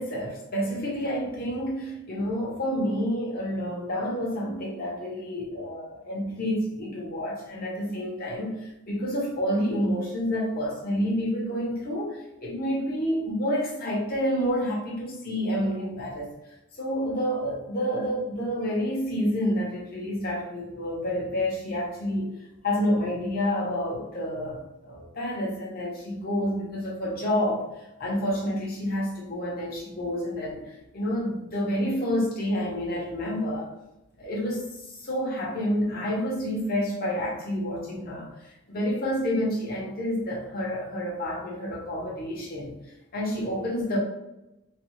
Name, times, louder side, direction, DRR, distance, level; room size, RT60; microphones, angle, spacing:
voice 1, 0.0-16.3 16.8-22.4 22.6-33.7 34.2-42.8 43.1-44.0, equal, 45° left, -4 dB, 0.9 m, -29 dB
3.2 x 2.4 x 3.0 m, 0.92 s
head